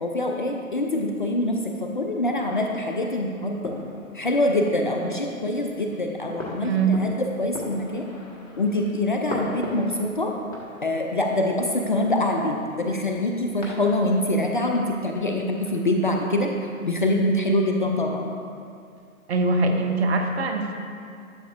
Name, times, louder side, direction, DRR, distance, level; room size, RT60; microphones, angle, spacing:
voice 1, 0.0-3.8 4.1-8.1 8.6-10.3 10.8-16.5 16.8-18.3, left 1 dB, 40° left, 2 dB, 0.4 m, -24 dB
sound 1, 0.7-16.2, left 1 dB, 65° left, 1.6 m, -41 dB
voice 2, 6.6-7.0 19.3-20.7, right 3 dB, 50° right, 4 dB, 0.8 m, -22 dB
11.5 x 6.8 x 2.5 m, 2.4 s
figure-of-eight pair, 130°, 43 cm